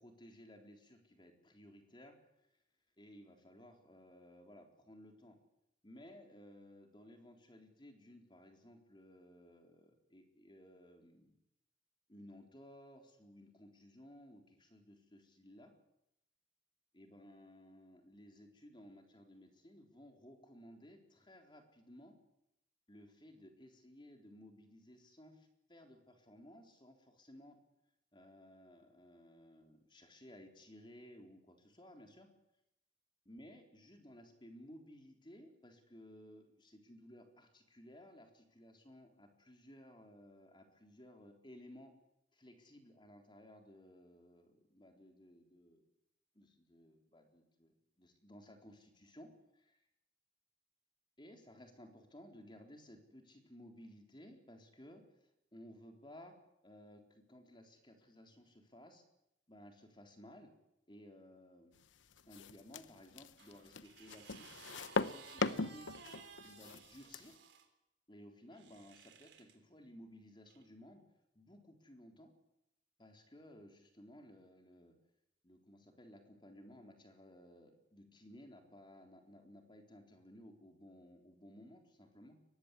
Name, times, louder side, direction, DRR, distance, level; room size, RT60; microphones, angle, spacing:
voice 1, 0.0-2.2 3.0-5.4 5.8-11.3 12.1-15.7 16.9-22.2 22.9-27.6 28.1-32.3 33.3-41.9 42.3-45.8 46.3-49.8 51.2-56.4 56.6-59.0 59.5-60.5 60.9-61.8 62.3-64.5 65.0-66.0 66.4-67.4 68.1-71.0 71.3-72.3 73.0-75.0 75.4-82.4, equal, 25° left, 4 dB, 3.9 m, -58 dB
sound 1, 62.1-67.3, left 3 dB, 90° left, 0.9 m, -39 dB
sound 2, 63.4-67.7 68.5-69.6 70.5-70.6, right 6 dB, 75° right, 3.6 m, -57 dB
23.0 x 19.0 x 10.0 m, 0.83 s
head